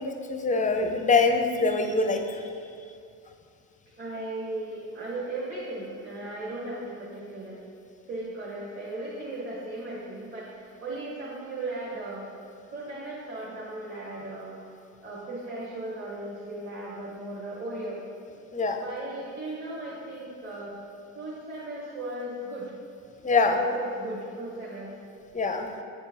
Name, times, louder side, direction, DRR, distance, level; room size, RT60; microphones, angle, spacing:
voice 1, 0.0-2.4 18.5-18.8 23.2-23.6 25.3-25.7, left 4 dB, 20° left, 5 dB, 0.5 m, -24 dB
voice 2, 4.0-7.6 8.1-12.2 12.7-14.6 15.0-18.0 18.7-20.8 21.1-22.7 23.3-24.9 25.7-25.8, right 2 dB, 30° right, -7 dB, 1.5 m, -36 dB
7.5 x 4.4 x 2.8 m, 2.3 s
hypercardioid pair, 65°, 40 cm